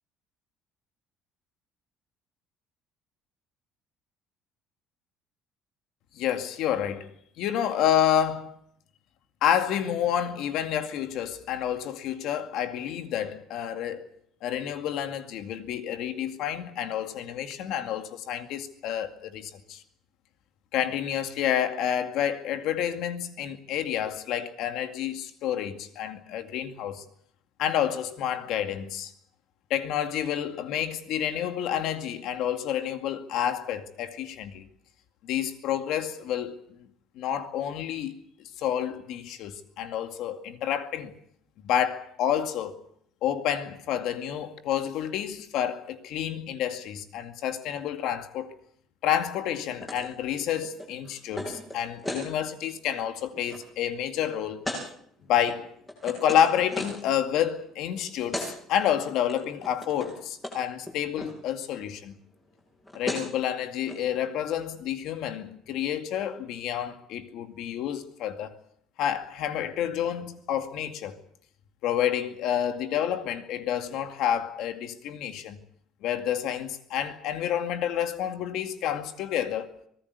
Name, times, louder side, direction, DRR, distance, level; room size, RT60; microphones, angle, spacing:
voice 1, 6.1-7.1 7.4-8.5 9.4-14.1 14.4-19.8 20.7-27.0 27.6-29.1 29.7-34.6 35.2-36.6 37.2-38.1 38.6-41.1 41.6-42.8 43.2-48.5 49.0-54.6 55.3-55.7 56.0-62.2 62.9-68.6 69.0-71.2 71.8-75.6 76.0-79.7, left 10 dB, 55° left, 2.2 m, -29 dB
sound 1, 49.8-50.1 50.4-52.3 52.8-53.0 53.3-53.6 54.6-54.8 55.5-57.1 58.0-58.1 58.2-58.5 58.8-59.3 59.6-60.2 60.4-60.6 60.8-61.3 62.6-62.7 62.8-63.4 63.9-64.0, left 1 dB, 10° left, 7.9 m, -36 dB
24.5 x 18.5 x 8.2 m
cardioid pair, 175°, 0 cm